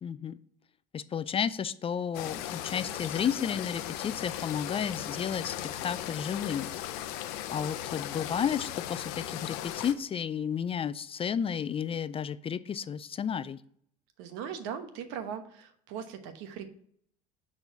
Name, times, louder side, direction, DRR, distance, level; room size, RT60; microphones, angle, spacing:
voice 1, 0.0-0.4 0.9-7.1 7.5-13.6, left 8 dB, 30° left, 15 dB, 0.4 m, -32 dB
sound 1, 2.1-9.9, left 12 dB, 75° left, 0.7 m, -37 dB
voice 2, 14.2-16.7, right 8 dB, 70° right, 9 dB, 1.1 m, -39 dB
6.7 x 4.1 x 5.6 m, 0.64 s
hypercardioid pair, 80°, 20 cm